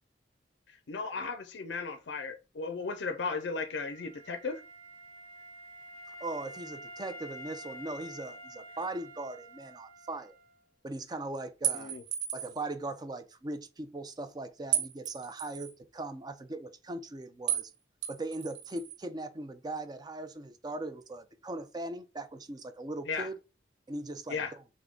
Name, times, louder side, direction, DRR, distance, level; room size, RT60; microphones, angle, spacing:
voice 1, 0.7-4.6 11.7-12.0 23.1-23.3 24.3-24.6, left 4 dB, 75° left, 0.5 m, -36 dB
Wind instrument woodwind instrument, 2.8-10.6, right 1 dB, 45° right, 1.2 m, -49 dB
voice 2, 6.1-10.4 10.8-11.9 12.3-17.7 18.1-23.4 23.9-24.6, right 2 dB, 25° right, 0.4 m, -39 dB
sound 1, 11.6-12.6 14.7-15.7 17.5-17.7 18.0-19.0, right 10 dB, 85° right, 0.8 m, -33 dB
3.6 x 3.4 x 3.7 m
head